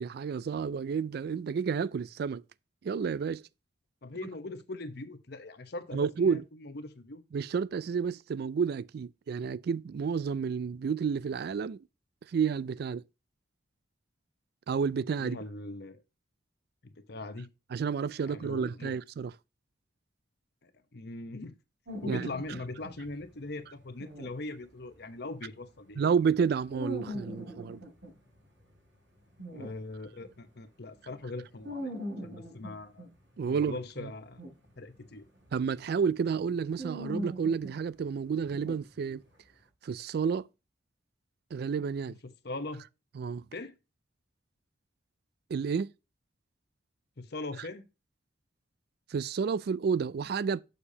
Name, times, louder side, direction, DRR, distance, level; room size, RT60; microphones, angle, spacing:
voice 1, 0.0-2.4 2.8-3.4 5.9-6.4 7.3-11.8 12.3-13.0 14.7-15.4 17.7-19.3 22.1-22.3 26.0-27.8 33.4-34.1 35.5-39.2 39.8-40.4 41.5-42.2 43.2-43.4 45.5-45.9 49.1-50.6, right 6 dB, 55° right, 0.3 m, -30 dB
voice 2, 4.0-7.2 15.2-16.0 16.8-17.5 18.2-18.9 20.6-21.5 22.0-26.0 29.5-33.1 33.4-34.4 34.8-35.2 42.2-42.8 43.5-43.7 47.2-47.8, left 2 dB, 60° left, 0.9 m, -41 dB
sound 1, 21.9-30.4 31.0-39.4, equal, 80° right, 4.2 m, -43 dB
6.9 x 6.6 x 2.8 m
head